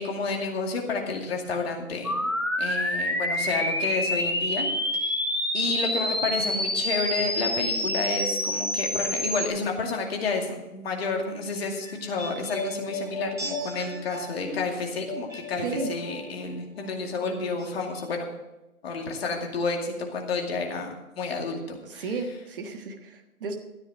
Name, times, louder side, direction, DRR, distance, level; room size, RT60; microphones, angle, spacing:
voice 1, 0.0-2.3 2.6-4.7 5.0-5.3 5.5-18.3 18.8-22.0, left 4 dB, 45° left, 2 dB, 2.4 m, -30 dB
sound 1, 2.0-9.5, left 1 dB, 20° left, 0.5 m, -27 dB
sound 2, 11.2-16.5 16.7-17.7 17.9-18.0, left 2 dB, 5° right, 3.9 m, -37 dB
voice 2, 15.6-15.9 21.9-23.6, right 4 dB, 40° right, 5 dB, 1.4 m, -33 dB
13.5 x 9.8 x 5.1 m, 1.0 s
hypercardioid pair, 150°, 43 cm